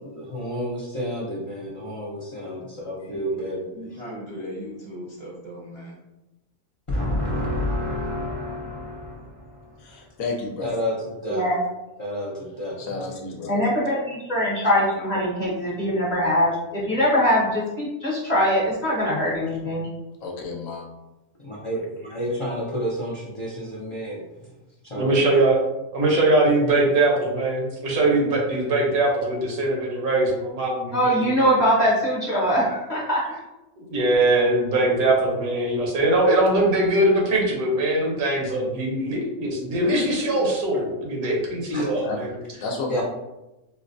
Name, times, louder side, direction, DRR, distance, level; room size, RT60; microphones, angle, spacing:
voice 1, 0.0-3.8 6.9-9.6 10.6-11.4 12.0-12.8 21.4-24.2 24.8-25.2 41.7-42.0 42.9-43.0, equal, 55° left, -7 dB, 0.3 m, -30 dB
voice 2, 2.9-3.4 3.7-6.0, equal, 30° right, -7 dB, 0.6 m, -38 dB
voice 3, 9.8-10.8 12.8-13.6 20.2-20.9 41.9-42.2 42.5-43.0, left 3 dB, 70° left, 0 dB, 0.9 m, -32 dB
voice 4, 11.3-11.6 13.5-19.9 30.9-33.4, equal, 35° left, -6 dB, 0.7 m, -22 dB
voice 5, 24.9-25.6 25.9-31.5 33.8-42.3, right 2 dB, 75° right, -2 dB, 1.4 m, -21 dB
4.5 x 2.1 x 2.5 m, 0.98 s
omnidirectional pair, 1.6 m